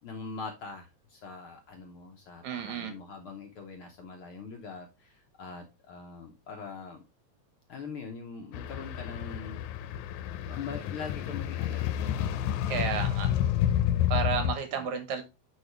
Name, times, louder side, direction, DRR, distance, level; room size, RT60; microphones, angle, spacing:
voice 1, 0.0-7.0 7.7-9.6 10.5-12.2 12.6-13.0 14.7-14.9, left 5 dB, 65° left, 3 dB, 1.4 m, -43 dB
voice 2, 2.4-2.9 12.7-13.3 14.1-15.2, right 7 dB, 75° right, 7 dB, 2.5 m, -32 dB
sound 1, 8.5-14.6, left 11 dB, 85° left, 2.1 m, -29 dB
9.5 x 4.7 x 3.3 m, 0.26 s
omnidirectional pair, 3.3 m